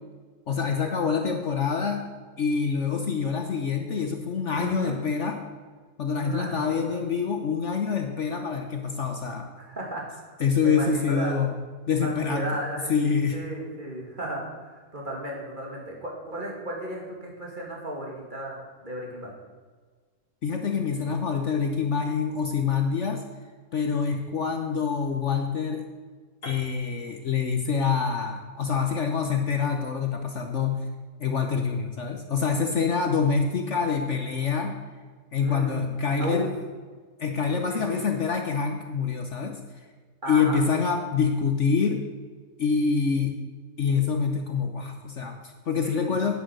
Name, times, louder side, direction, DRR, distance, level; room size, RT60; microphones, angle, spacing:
voice 1, 0.5-2.0 2.4-5.4 6.0-9.5 10.4-11.5 11.9-12.5 12.9-13.4 20.4-23.2 23.7-25.8 26.4-30.8 31.2-34.8 35.3-36.5 37.2-39.6 40.3-42.0 42.6-43.4 43.8-46.3, left 5 dB, 55° left, 4 dB, 1.2 m, -26 dB
voice 2, 4.5-4.9 6.1-7.0 9.6-11.4 12.0-12.9 13.3-19.3 24.6-24.7 35.4-35.9 36.2-36.5 37.7-38.0 40.2-40.6 45.8-46.3, right 1 dB, 30° right, -2 dB, 2.8 m, -35 dB
Piano, 26.4-30.3, left 1 dB, 85° left, 2.9 m, -48 dB
10.5 x 9.3 x 6.3 m, 1.5 s
omnidirectional pair, 1.6 m